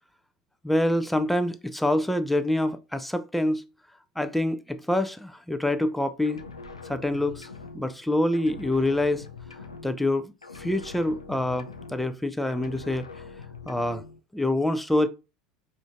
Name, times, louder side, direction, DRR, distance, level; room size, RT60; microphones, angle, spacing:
voice 1, 0.6-3.6 4.2-6.4 6.8-7.5 7.7-9.3 9.8-13.1 13.7-14.0 14.3-15.1, left 1 dB, 5° left, 0.3 m, -26 dB
sound 1, 6.2-8.1 8.3-10.2 10.4-12.2 12.5-14.2, left 4 dB, 80° left, 0.3 m, -43 dB
4.9 x 2.5 x 2.3 m
figure-of-eight pair, 75°, 3 cm